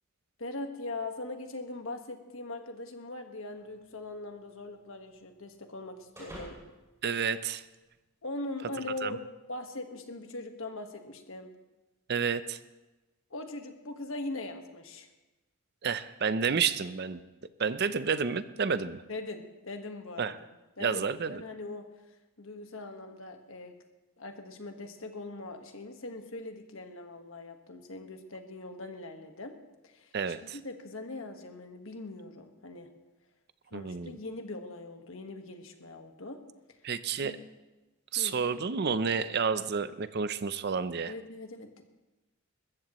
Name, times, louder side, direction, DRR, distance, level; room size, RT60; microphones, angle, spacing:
voice 1, 0.4-6.6 8.2-11.5 13.3-15.1 19.1-20.3 20.8-21.9 22.4-23.7 24.2-29.5 29.8-30.1 30.4-32.9 33.7-36.4 37.2-37.4 38.2-38.4 41.1-41.8, left 2 dB, 65° left, 5 dB, 1.5 m, -41 dB
sound 1, 3.6-8.0, right 1 dB, 15° right, 5.9 m, -53 dB
voice 2, 7.0-7.6 9.0-9.2 12.1-12.6 15.8-17.2 17.6-19.0 20.2-20.4 20.8-21.4 30.1-30.6 33.7-34.2 36.8-37.3 38.1-41.1, right 6 dB, 50° right, 13 dB, 0.5 m, -30 dB
21.5 x 14.5 x 3.1 m, 1.1 s
head